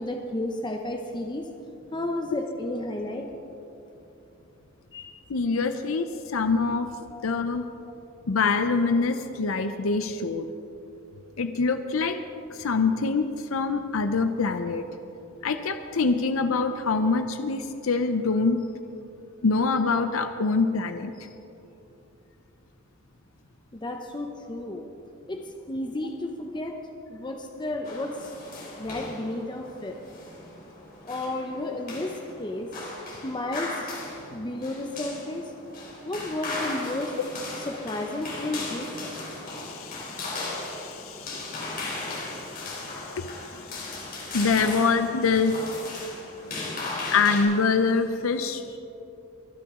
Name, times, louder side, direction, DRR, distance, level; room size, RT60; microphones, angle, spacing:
voice 1, 0.0-1.5 1.9-3.2 4.9-5.1 7.1-7.3 23.7-24.8 25.3-25.4 25.7-26.7 27.1-28.3 28.8-30.0 31.1-32.7 33.2-33.9 34.3-35.4 36.0-37.1 37.7-39.1, left 1 dB, 20° left, 2 dB, 0.7 m, -32 dB
voice 2, 5.3-6.9 7.2-7.6 8.3-10.5 11.4-12.2 12.6-14.8 15.4-18.6 19.4-21.1 39.5-43.3 44.3-45.6 47.1-48.6, left 4 dB, 75° left, 8 dB, 0.6 m, -25 dB
sound 1, 27.8-47.4, left 2 dB, 45° left, 3.4 m, -37 dB
24.0 x 9.9 x 3.7 m, 2.9 s
head